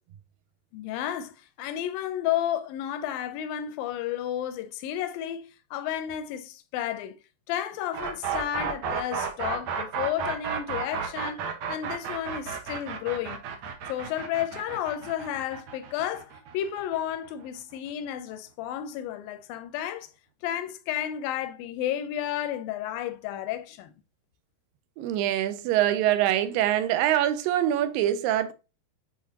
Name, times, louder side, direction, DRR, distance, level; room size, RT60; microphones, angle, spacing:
voice 1, 0.7-7.1 7.5-11.4 11.7-13.4 13.9-20.1 20.4-23.9, left 11 dB, 90° left, 2.5 m, -32 dB
sound 1, 7.9-17.8, right 7 dB, 65° right, 2.1 m, -33 dB
voice 2, 25.0-28.5, right 12 dB, 85° right, 2.4 m, -24 dB
9.4 x 4.1 x 2.7 m
omnidirectional pair, 4.0 m